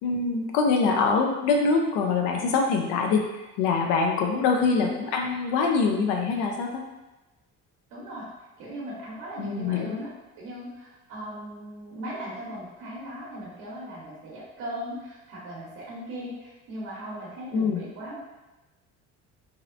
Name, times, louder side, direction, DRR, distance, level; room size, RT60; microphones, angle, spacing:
voice 1, 0.0-6.8 9.4-10.0 17.5-17.8, left 4 dB, 85° left, 2 dB, 0.5 m, -24 dB
voice 2, 7.9-8.3 8.6-10.1 10.4-18.3, equal, 75° right, -6 dB, 0.8 m, -38 dB
2.8 x 2.0 x 2.4 m, 1.1 s
supercardioid pair, 90°, 33 cm